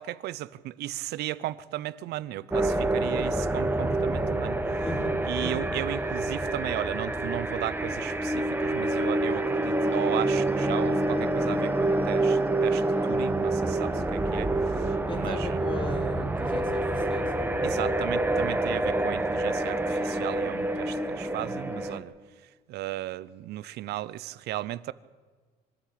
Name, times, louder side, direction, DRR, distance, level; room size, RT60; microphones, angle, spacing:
voice 1, 0.0-4.6 5.2-15.6 17.6-22.1 22.7-24.9, right 15 dB, 75° right, 18 dB, 0.7 m, -35 dB
sound 1, 2.5-22.0, right 2 dB, 10° right, 1.4 m, -27 dB
voice 2, 4.8-5.7 15.1-16.8 17.1-17.5, left 3 dB, 30° left, 6 dB, 2.7 m, -37 dB
24.5 x 13.0 x 8.7 m, 1.5 s
cardioid pair, 110°, 17 cm